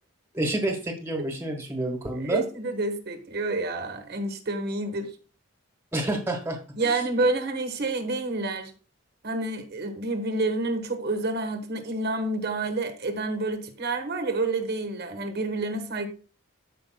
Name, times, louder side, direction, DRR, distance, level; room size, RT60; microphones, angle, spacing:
voice 1, 0.3-2.4 5.9-7.0, right 1 dB, 10° right, 1.4 m, -29 dB
voice 2, 2.2-5.1 6.8-8.7 9.2-16.1, right 2 dB, 50° right, 1.3 m, -28 dB
14.5 x 5.1 x 2.2 m
head